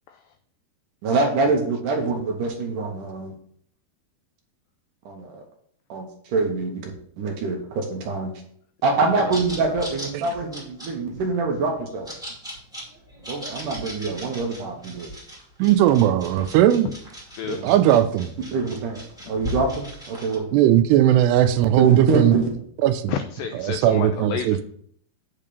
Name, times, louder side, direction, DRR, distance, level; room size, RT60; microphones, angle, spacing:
voice 1, 1.0-3.3 5.1-5.4 5.9-6.1 6.3-8.3 8.8-12.1 13.3-15.1 17.5-17.8 18.5-19.0 19.3-20.5 21.8-22.5, right 3 dB, 65° right, 2.2 m, -25 dB
sound 1, 9.3-20.4, equal, ahead, 1.1 m, -38 dB
voice 2, 15.6-16.9 17.6-18.3 20.5-22.4 22.8-23.1 23.5-24.6, right 12 dB, 85° right, 2.7 m, -18 dB
voice 3, 23.1-24.6, left 8 dB, 90° left, 2.0 m, -30 dB
8.8 x 3.7 x 6.7 m
omnidirectional pair, 4.7 m